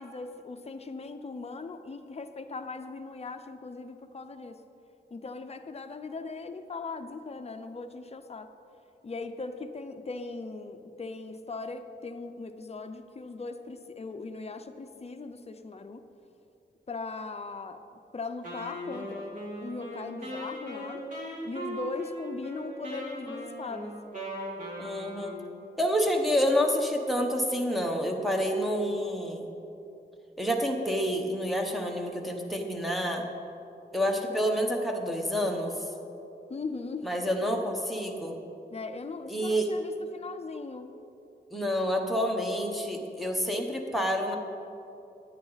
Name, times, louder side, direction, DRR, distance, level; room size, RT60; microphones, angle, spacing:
voice 1, 0.0-4.6 5.1-8.5 9.0-16.0 16.9-17.8 18.1-19.3 19.6-21.0 21.4-23.9 36.5-37.1 38.7-41.0, left 3 dB, 35° left, 7 dB, 0.6 m, -39 dB
Wind instrument woodwind instrument, 18.4-25.6, equal, 45° right, 2.6 m, -39 dB
voice 2, 24.8-25.4 25.8-29.5 30.4-33.2 33.9-35.7 37.0-38.4 39.3-39.7 41.5-44.4, equal, ahead, 2 dB, 1.0 m, -28 dB
15.5 x 9.9 x 4.0 m, 2.8 s
wide cardioid pair, 180°, 19 cm